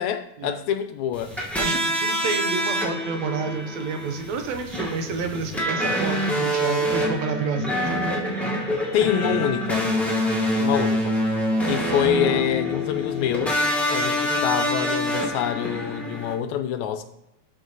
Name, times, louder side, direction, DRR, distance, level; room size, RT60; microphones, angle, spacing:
voice 1, 0.0-1.4 8.9-9.9 10.6-11.1 11.7-17.0, left 9 dB, 80° left, 9 dB, 1.9 m, -26 dB
sound 1, 1.1-16.3, equal, ahead, 0.6 m, -26 dB
voice 2, 1.6-8.0, right 5 dB, 75° right, 6 dB, 2.0 m, -29 dB
12.0 x 4.2 x 4.0 m, 0.87 s
omnidirectional pair, 3.5 m